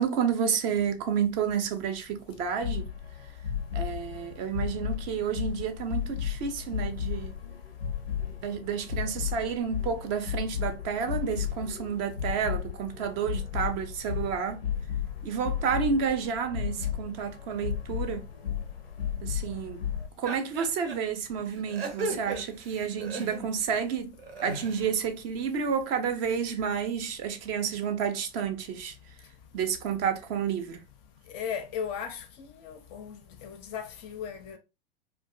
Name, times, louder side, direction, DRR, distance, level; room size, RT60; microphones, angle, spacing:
voice 1, 0.0-2.8 3.7-7.3 8.4-14.6 15.2-18.2 19.2-19.8 20.2-24.1 24.4-28.9 29.5-30.8, right 7 dB, 35° right, 0.5 m, -30 dB
sound 1, 2.6-20.1, left 9 dB, 90° left, 0.4 m, -34 dB
sound 2, 20.3-21.0 21.5-23.7 24.1-24.9, right 2 dB, 75° right, 0.7 m, -36 dB
voice 2, 31.3-32.2 32.6-34.6, left 7 dB, 35° left, 0.4 m, -36 dB
2.5 x 2.2 x 2.3 m
figure-of-eight pair, 85°, 29 cm